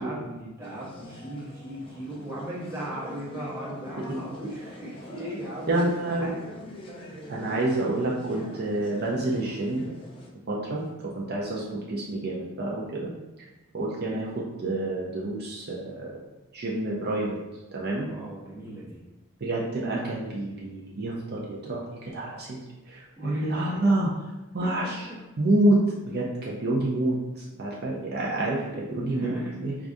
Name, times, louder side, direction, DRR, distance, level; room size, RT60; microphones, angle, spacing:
voice 1, 0.0-5.9 6.2-6.5 10.5-10.7 18.0-19.0 23.2-23.7 24.6-24.9 28.4-28.6 29.1-29.6, right 1 dB, 10° right, -7 dB, 0.8 m, -38 dB
sound 1, 0.6-10.3, left 1 dB, 25° left, 0.5 m, -44 dB
voice 2, 5.7-6.3 7.3-9.8 10.5-13.1 13.7-16.2 16.5-17.4 17.7-18.1 19.4-22.6 22.9-24.1 24.5-25.1 25.4-28.6 28.9-29.8, right 1 dB, 50° right, -4 dB, 0.5 m, -28 dB
4.7 x 2.3 x 2.5 m, 1.0 s
head